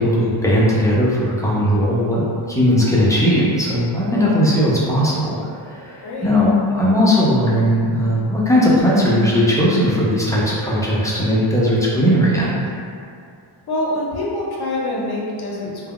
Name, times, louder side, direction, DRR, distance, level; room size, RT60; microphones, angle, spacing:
voice 1, 0.0-6.5 6.8-12.6, equal, 5° left, -8 dB, 0.5 m, -18 dB
voice 2, 6.0-6.4 13.7-15.9, left 1 dB, 50° left, -4 dB, 0.7 m, -25 dB
2.2 x 2.2 x 3.5 m, 2.4 s
wide cardioid pair, 120°, 49 cm